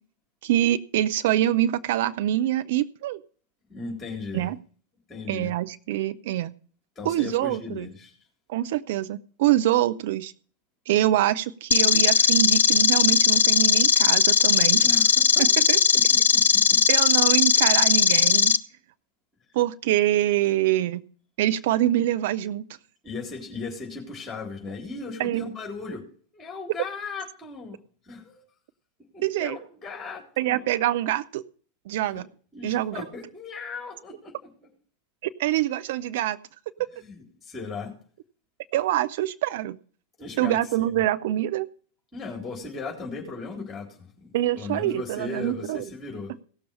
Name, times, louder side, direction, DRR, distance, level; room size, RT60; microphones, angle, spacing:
voice 1, 0.4-3.2 4.3-4.6 5.3-6.5 7.0-7.9 8.5-10.3 10.9-14.8 15.4-15.8 16.9-18.5 19.5-21.0 21.4-22.6 25.2-25.5 29.2-29.6 30.4-31.4 31.9-32.3 32.6-33.0 35.2-36.4 38.7-39.8 40.4-41.7 44.3-45.8, right 13 dB, 55° right, 12 dB, 0.7 m, -25 dB
voice 2, 3.7-4.5 5.1-5.5 7.0-8.1 14.8-15.5 15.9-17.1 23.0-26.0 26.3-27.8 28.1-28.4 29.1-30.7 32.1-32.2 32.5-34.3 34.6-34.7 37.0-37.9 40.2-41.0 42.1-44.3 44.6-46.3, left 4 dB, 15° left, 0 dB, 4.0 m, -37 dB
sound 1, 11.7-18.6, left 7 dB, 65° left, 0.5 m, -19 dB
16.5 x 6.9 x 5.5 m, 0.44 s
figure-of-eight pair, 90°, 0 cm